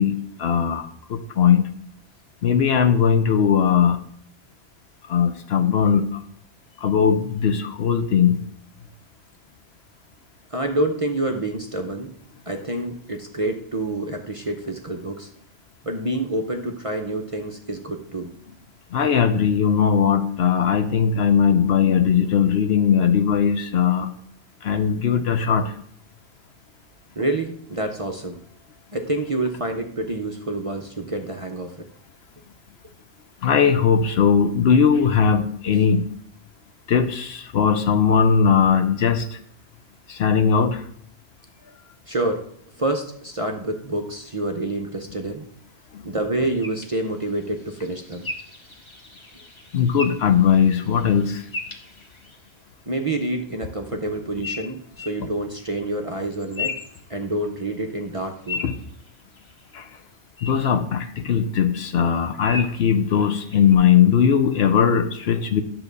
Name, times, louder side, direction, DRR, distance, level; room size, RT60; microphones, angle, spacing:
voice 1, 0.0-1.7 2.4-4.0 5.1-6.2 6.8-8.5 18.9-24.1 24.6-25.8 33.4-36.1 36.9-39.4 40.1-40.9 45.9-46.0 49.7-51.5 58.6-58.7 59.7-59.9 60.4-65.6, left 7 dB, 60° left, 9 dB, 0.8 m, -19 dB
voice 2, 10.5-12.1 12.5-15.3 15.8-18.3 27.2-28.4 28.9-31.9 42.1-42.5 42.8-45.4 46.0-48.3 52.9-56.8 57.1-58.7, right 2 dB, 35° right, 3 dB, 0.6 m, -27 dB
sound 1, 46.6-52.5 54.4-55.2 56.2-57.6 58.0-59.7 60.4-60.5 61.0-61.1 62.4-62.8 63.5-63.7, left 3 dB, 25° left, 1.0 m, -36 dB
10.5 x 3.8 x 6.7 m, 0.65 s
omnidirectional pair, 1.3 m